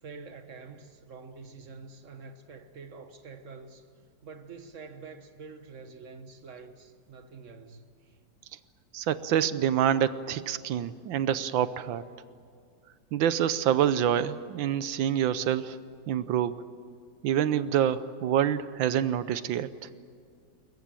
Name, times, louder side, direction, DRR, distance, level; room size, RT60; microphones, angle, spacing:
voice 1, 0.0-3.8 4.2-8.2, right 4 dB, 40° right, 1.5 m, -46 dB
voice 2, 8.9-12.0 13.1-15.8 16.1-16.6 17.2-19.7, right 10 dB, 75° right, 1.5 m, -26 dB
22.0 x 21.0 x 9.0 m
omnidirectional pair, 2.2 m